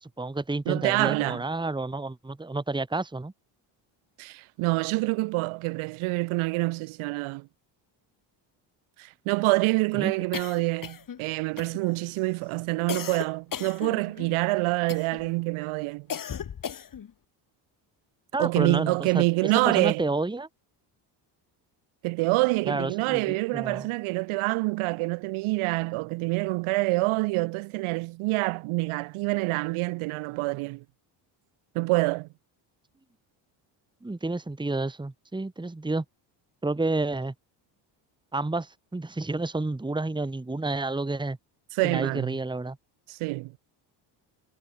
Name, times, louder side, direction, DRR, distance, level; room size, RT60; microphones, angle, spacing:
voice 1, 0.0-3.3 9.9-10.1 18.3-20.5 22.6-23.9 34.0-36.0 36.6-37.3 38.3-41.4 41.8-42.8, right 2 dB, 10° right, 2.0 m, -30 dB
voice 2, 0.7-1.4 4.2-7.5 9.0-16.1 18.4-20.1 22.0-30.8 31.8-32.3 41.7-42.4 43.1-43.6, right 23 dB, 85° right, 5.2 m, -26 dB
sound 1, 10.3-11.2 11.6-12.1 12.9-14.4 14.9-15.3 16.1-17.1, left 8 dB, 40° left, 3.3 m, -36 dB
cardioid pair, 90°, 48 cm